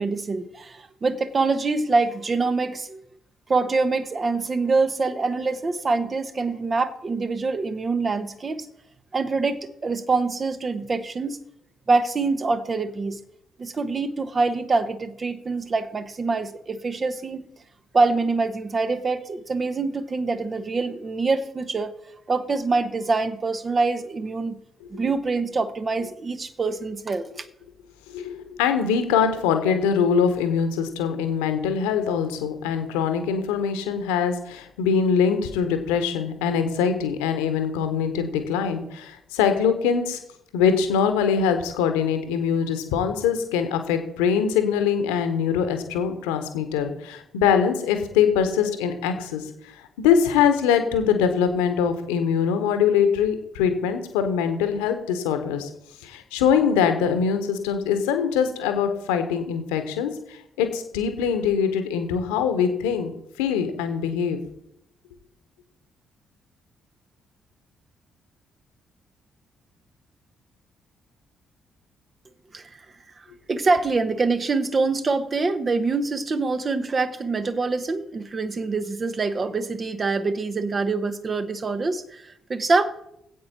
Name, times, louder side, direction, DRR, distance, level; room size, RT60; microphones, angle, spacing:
voice 1, 0.0-3.0 3.5-8.6 9.1-11.4 11.9-13.2 13.6-17.4 17.9-21.9 22.3-24.6 24.9-27.4 72.5-72.8 73.5-82.9, right 3 dB, 35° right, 10 dB, 1.1 m, -25 dB
voice 2, 28.1-40.2 40.5-55.7 56.0-63.1 63.4-64.4, left 7 dB, 70° left, 8 dB, 1.3 m, -23 dB
15.0 x 8.6 x 4.5 m, 0.80 s
figure-of-eight pair, 40°, 0 cm